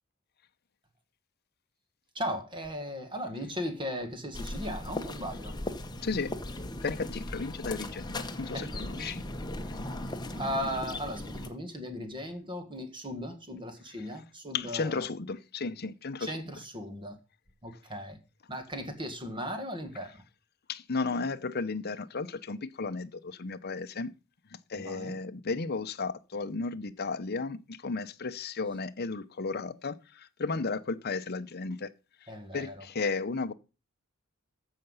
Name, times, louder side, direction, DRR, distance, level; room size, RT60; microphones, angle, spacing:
voice 1, 2.2-5.5 8.5-9.1 10.3-15.0 16.2-17.2 17.6-18.2 18.5-20.1 24.8-25.2 32.3-32.8, equal, 25° right, 1.8 m, -37 dB
sound 1, 4.3-11.5, left 1 dB, 20° left, 1.1 m, -38 dB
voice 2, 6.0-6.3 6.8-9.2 14.5-16.4 20.7-24.1 24.7-31.9 32.2-33.5, left 4 dB, 50° left, 0.7 m, -34 dB
14.5 x 5.8 x 5.6 m
head